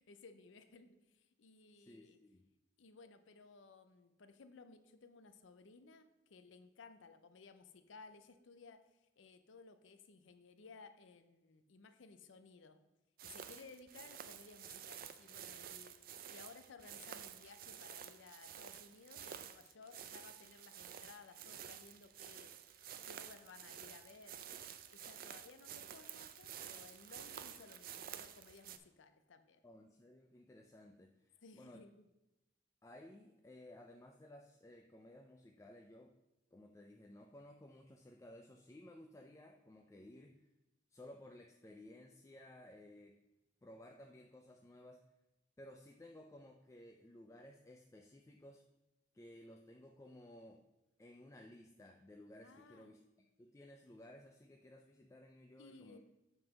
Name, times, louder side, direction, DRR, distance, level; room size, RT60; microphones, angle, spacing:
voice 1, 0.0-2.2 2.8-12.8 13.2-22.7 23.0-24.4 24.9-29.6 31.4-32.1 52.4-52.9 55.6-56.0, left 4 dB, 85° left, 9 dB, 0.6 m, -59 dB
voice 2, 1.9-2.5 29.6-31.8 32.8-36.2 36.5-40.5 40.9-43.2 43.6-45.0 45.6-48.6 49.1-50.6 51.0-53.0 53.4-56.0, left 1 dB, 15° left, 3 dB, 0.3 m, -57 dB
sound 1, 13.2-28.8, right 9 dB, 50° right, 0.4 m, -51 dB
7.9 x 3.8 x 5.9 m, 0.96 s
head